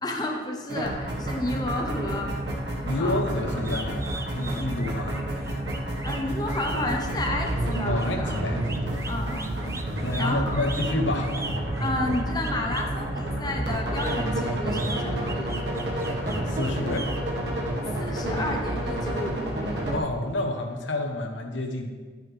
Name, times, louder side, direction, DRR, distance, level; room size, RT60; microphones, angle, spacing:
voice 1, 0.0-2.3 3.0-3.2 6.0-8.4 9.1-9.8 10.2-10.6 11.8-15.5 18.0-19.8, left 1 dB, 20° left, 1 dB, 0.9 m, -31 dB
sound 1, 0.7-20.0, right 1 dB, 65° right, 1.5 m, -29 dB
voice 2, 2.8-5.2 7.9-9.2 10.0-11.4 16.2-17.1 19.9-21.9, left 2 dB, 85° left, 3 dB, 1.1 m, -29 dB
sound 2, 3.6-12.9 13.7-17.2, right 3 dB, 15° right, 0.4 m, -39 dB
11.0 x 9.4 x 3.4 m, 1.5 s
head